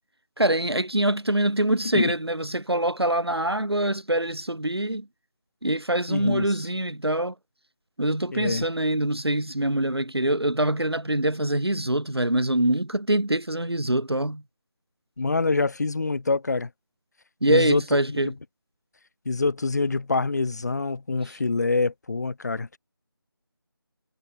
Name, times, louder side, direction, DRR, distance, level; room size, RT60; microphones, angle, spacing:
voice 1, 0.4-5.1 5.6-7.3 8.0-14.4 17.4-18.3, right 1 dB, 85° right, 2.3 m, -24 dB
voice 2, 6.1-6.5 8.3-8.7 15.2-16.7 17.5-17.8 18.1-18.3 19.3-22.8, left 3 dB, 45° left, 2.1 m, -25 dB
figure-of-eight pair, 160°, 13 cm